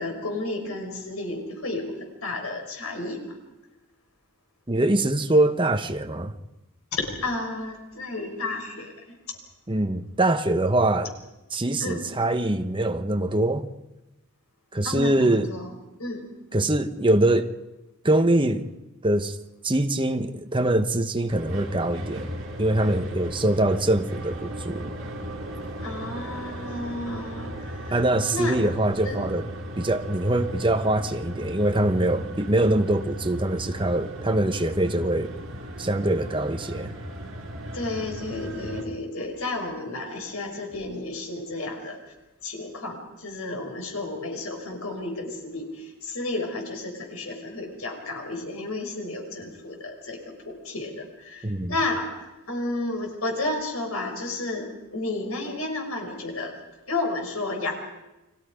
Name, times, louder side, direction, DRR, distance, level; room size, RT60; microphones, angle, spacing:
voice 1, 0.0-3.4 6.9-9.2 11.8-12.0 14.8-15.7 16.0-16.3 25.8-28.0 28.3-28.6 29.0-29.2 37.7-42.0 42.4-56.5 56.9-57.7, left 2 dB, 80° left, 5.6 m, -32 dB
voice 2, 4.7-6.3 9.7-11.1 11.5-13.7 14.7-15.5 16.5-17.5 18.0-18.7 19.0-19.4 19.6-22.3 22.6-24.9 27.9-29.5 29.8-35.3 35.8-36.9 51.4-51.7, right 1 dB, 25° right, 1.1 m, -23 dB
sound 1, 21.3-38.8, right 1 dB, 70° right, 5.4 m, -36 dB
30.0 x 24.0 x 5.2 m
head